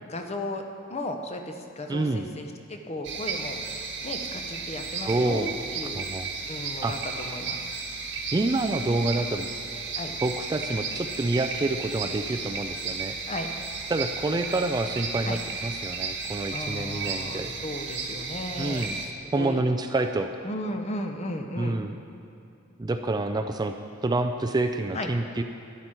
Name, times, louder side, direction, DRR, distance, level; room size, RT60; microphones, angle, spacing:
voice 1, 0.1-0.6 0.9-6.0 6.5-7.6 9.9-10.1 13.3-13.5 15.2-15.4 16.5-19.6 20.4-21.8 24.9-25.1, left 1 dB, 30° left, 4 dB, 0.8 m, -35 dB
voice 2, 1.9-2.3 5.0-5.5 5.9-6.3 6.8-7.0 8.3-9.5 10.2-13.2 13.9-17.5 18.6-19.0 19.3-20.3 21.6-22.0 22.8-23.7 24.0-25.4, right 2 dB, 20° right, 6 dB, 0.4 m, -27 dB
sound 1, 3.0-19.1, right 4 dB, 60° right, 1.3 m, -34 dB
12.0 x 11.0 x 4.4 m, 2.6 s
head